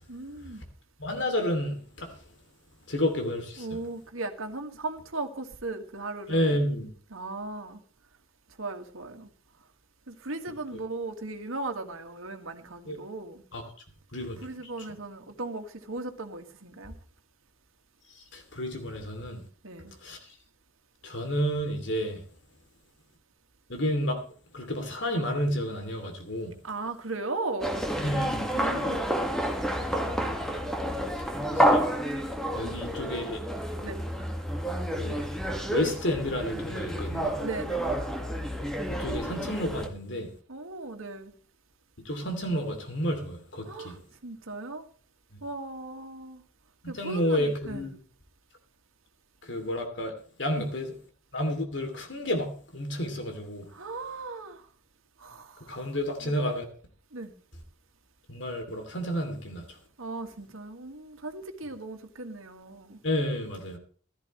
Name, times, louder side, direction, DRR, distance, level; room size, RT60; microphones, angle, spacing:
voice 1, 0.1-0.6 3.6-6.6 7.1-7.8 8.6-9.3 10.1-13.4 14.4-17.0 19.6-19.9 26.6-27.8 28.5-29.1 32.6-32.8 33.8-34.0 37.4-37.9 40.5-41.3 43.6-44.9 45.4-46.4 46.9-47.9 50.6-50.7 53.7-54.6 55.2-55.9 56.2-56.3 57.1-57.3 60.0-63.0, right 2 dB, 90° right, 1.9 m, -37 dB
voice 2, 1.0-2.1 2.9-3.7 6.3-6.9 12.9-13.0 13.5-13.6 14.1-14.4 14.8-14.9 18.3-19.4 20.0-20.2 21.0-22.2 23.7-24.1 24.5-26.5 28.0-28.5 31.5-31.8 32.5-33.4 34.9-35.2 35.7-37.4 38.9-40.3 42.0-44.0 46.9-47.9 49.4-50.1 50.4-50.9 51.3-53.7 55.7-56.6 58.3-59.6 63.0-63.8, equal, 60° left, 2.8 m, -30 dB
sound 1, 27.6-39.9, equal, 5° left, 1.7 m, -29 dB
16.0 x 13.0 x 3.2 m
head